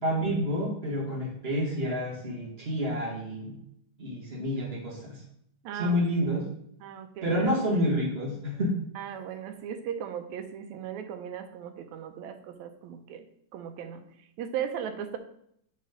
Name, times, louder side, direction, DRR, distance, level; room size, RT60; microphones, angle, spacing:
voice 1, 0.0-3.6 4.0-5.2 5.7-6.4 7.2-8.7, equal, 25° right, -4 dB, 1.4 m, -29 dB
voice 2, 5.6-6.0 6.8-7.5 9.0-13.2 13.5-14.0 14.4-15.2, right 8 dB, 85° right, 7 dB, 2.0 m, -37 dB
6.4 x 4.2 x 5.2 m, 0.71 s
omnidirectional pair, 3.3 m